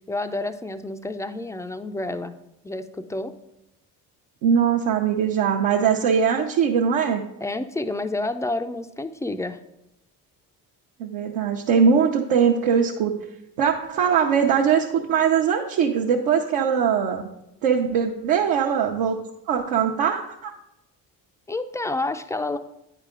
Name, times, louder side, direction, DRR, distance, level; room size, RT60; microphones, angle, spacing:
voice 1, 0.1-2.3 2.6-3.4 7.4-9.6 21.5-22.6, left 2 dB, 10° left, 9 dB, 0.3 m, -29 dB
voice 2, 4.4-7.2 11.0-13.1 13.6-17.3 17.6-19.2 19.5-20.5, right 7 dB, 75° right, -1 dB, 0.8 m, -21 dB
8.9 x 4.9 x 3.7 m, 0.86 s
hypercardioid pair, 60°, 47 cm